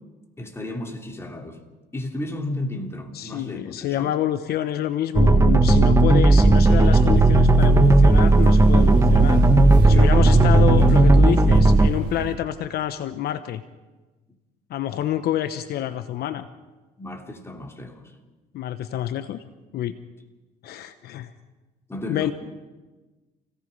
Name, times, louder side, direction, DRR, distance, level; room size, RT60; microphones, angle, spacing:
voice 1, 0.4-1.6 1.9-4.1 9.9-10.9 17.0-18.0 21.9-22.3, left 1 dB, 15° left, 3.3 m, -33 dB
voice 2, 3.1-9.4 9.9-13.6 14.7-16.5 18.5-19.4 19.7-20.0 20.6-21.3 22.1-22.3, left 11 dB, 70° left, 1.0 m, -27 dB
sound 1, 5.2-11.9, right 2 dB, 20° right, 1.4 m, -15 dB
sound 2, 6.5-12.4, right 4 dB, 75° right, 4.2 m, -36 dB
28.5 x 18.0 x 5.5 m
cardioid pair, 110°, 17 cm